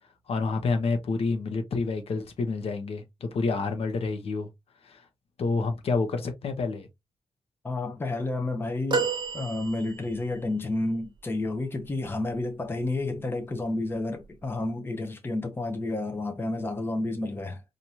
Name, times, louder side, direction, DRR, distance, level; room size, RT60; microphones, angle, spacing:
voice 1, 0.3-4.5 4.8-5.1 5.4-6.9, left 4 dB, 65° left, 0.9 m, -28 dB
voice 2, 7.6-17.6, left 2 dB, 20° left, 0.7 m, -30 dB
sound 1, 8.9-10.3 12.7-12.9 14.2-14.3, right 4 dB, 45° right, 0.7 m, -30 dB
4.5 x 2.6 x 2.7 m
cardioid pair, 110°, 11 cm